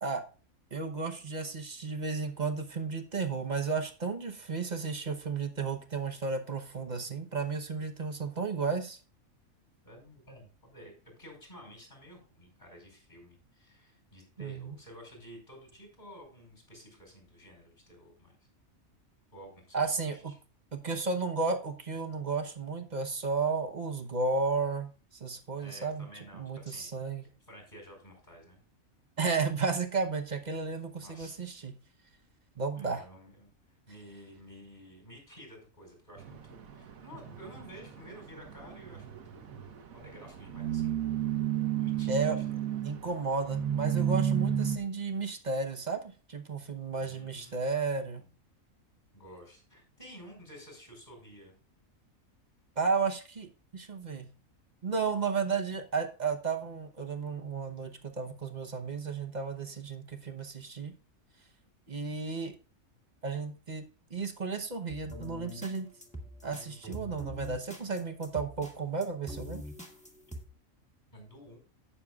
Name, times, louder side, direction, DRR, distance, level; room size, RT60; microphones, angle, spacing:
voice 1, 0.7-9.0 14.4-14.7 19.7-20.3 20.7-24.9 25.2-26.1 26.3-27.3 29.2-31.7 32.6-33.0 42.1-42.4 42.8-48.2 52.8-54.3 54.8-60.9 61.9-62.5 63.2-65.9 66.4-69.6, right 4 dB, 35° right, 5 dB, 1.0 m, -33 dB
voice 2, 9.8-18.4 19.3-20.3 25.6-27.0 27.5-28.6 31.0-31.4 32.8-39.2 39.9-41.0 41.8-42.8 47.0-48.3 49.1-51.5 71.1-71.6, equal, 35° left, 1 dB, 5.5 m, -52 dB
sound 1, 36.2-44.8, right 9 dB, 85° right, 1.5 m, -33 dB
sound 2, 64.9-70.5, left 1 dB, 5° left, 1.9 m, -44 dB
17.0 x 6.8 x 2.4 m, 0.35 s
omnidirectional pair, 1.4 m